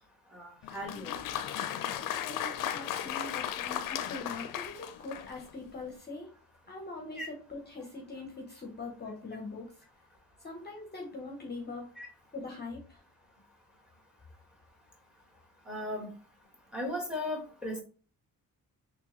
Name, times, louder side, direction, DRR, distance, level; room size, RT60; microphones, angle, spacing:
voice 1, 0.3-1.1 7.2-7.3 12.0-12.1 15.7-16.1 16.7-17.8, left 1 dB, ahead, 2 dB, 1.3 m, -36 dB
Applause, 0.6-5.5, left 10 dB, 65° left, 0.5 m, -36 dB
voice 2, 2.2-6.3 6.7-9.7 10.4-11.9 12.3-13.0, left 3 dB, 30° left, 1 dB, 0.8 m, -42 dB
3.4 x 3.0 x 3.0 m, 0.39 s
cardioid pair, 85°, 35 cm